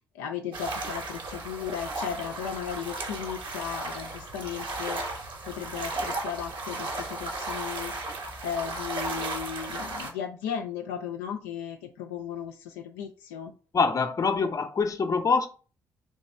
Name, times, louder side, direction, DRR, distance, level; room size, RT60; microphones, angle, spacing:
voice 1, 0.1-5.0 5.4-7.9 8.4-13.5, left 8 dB, 70° left, 0.4 m, -35 dB
sound 1, 0.5-10.1, right 2 dB, 50° right, 1.0 m, -35 dB
voice 2, 13.7-15.5, left 4 dB, 35° left, 0.6 m, -24 dB
3.2 x 3.0 x 4.3 m
figure-of-eight pair, 40°, 10 cm